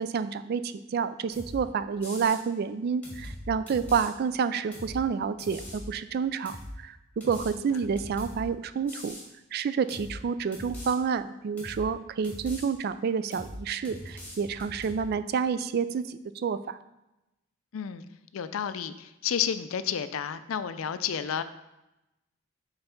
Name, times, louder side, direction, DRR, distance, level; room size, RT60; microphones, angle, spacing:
voice 1, 0.0-9.2 9.5-16.8, right 6 dB, 50° right, 13 dB, 0.3 m, -29 dB
sound 1, 1.3-1.6 2.0-2.4 3.0-4.1 4.7-5.0 5.4-5.9 6.4-6.7 7.2-8.4 8.9-9.3 9.9-10.2 10.5-10.9 11.6-11.8 12.2-12.7 13.3-13.6 13.8-15.0, left 1 dB, 10° left, 1.7 m, -41 dB
voice 2, 17.7-18.0 18.3-21.4, left 8 dB, 85° left, 12 dB, 0.4 m, -31 dB
5.5 x 3.9 x 5.8 m, 0.95 s
head